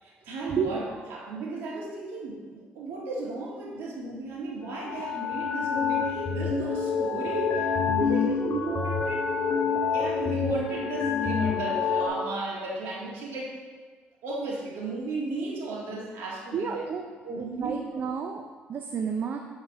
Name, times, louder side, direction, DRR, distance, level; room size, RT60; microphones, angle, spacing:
voice 1, 0.0-9.6 9.9-13.6 14.2-16.9 17.2-17.9, right 3 dB, 80° right, -3 dB, 1.9 m, -35 dB
sound 1, 4.7-12.1, left 5 dB, 50° left, 2.0 m, -27 dB
voice 2, 8.0-8.4 16.5-17.1 17.3-19.4, right 6 dB, 55° right, 3 dB, 0.6 m, -31 dB
8.7 x 3.9 x 5.6 m, 1.5 s
cardioid pair, 85°, 4 cm